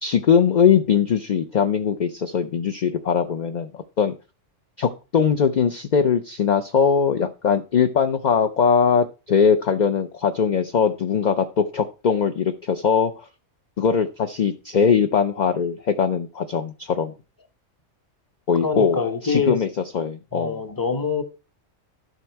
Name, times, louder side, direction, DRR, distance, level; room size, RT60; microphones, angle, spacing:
voice 1, 0.0-4.1 4.8-13.3 13.8-17.1 18.5-19.7 19.9-20.5, left 6 dB, 45° left, 0.6 m, -21 dB
voice 2, 18.6-19.6 20.3-21.2, left 5 dB, 20° left, 0.9 m, -25 dB
12.0 x 6.1 x 4.5 m
omnidirectional pair, 1.3 m